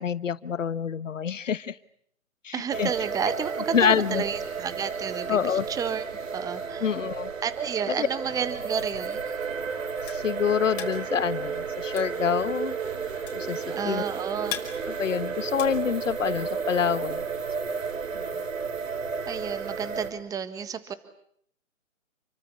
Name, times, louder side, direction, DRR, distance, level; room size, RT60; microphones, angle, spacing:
voice 1, 0.0-1.8 2.4-2.9 3.7-4.2 5.3-5.7 6.8-7.3 8.0-8.1 10.1-12.7 13.3-14.0 15.0-17.2, left 7 dB, 65° left, 18 dB, 1.2 m, -26 dB
voice 2, 2.5-6.0 6.3-6.9 7.4-9.3 13.7-14.6 19.3-20.9, right 7 dB, 10° right, 13 dB, 1.5 m, -31 dB
sound 1, 2.7-20.1, right 5 dB, 70° right, 4.3 m, -32 dB
sound 2, 5.1-5.8 6.6-7.4 8.2-8.9 9.6-10.2 10.9-11.5 12.2-12.8 13.6-14.2 14.9-15.6 16.2-16.9, right 6 dB, 50° right, 6.0 m, -53 dB
sound 3, 10.1-16.6, left 12 dB, 25° left, 5.0 m, -40 dB
29.5 x 23.0 x 8.4 m, 0.69 s
figure-of-eight pair, 135°, 41 cm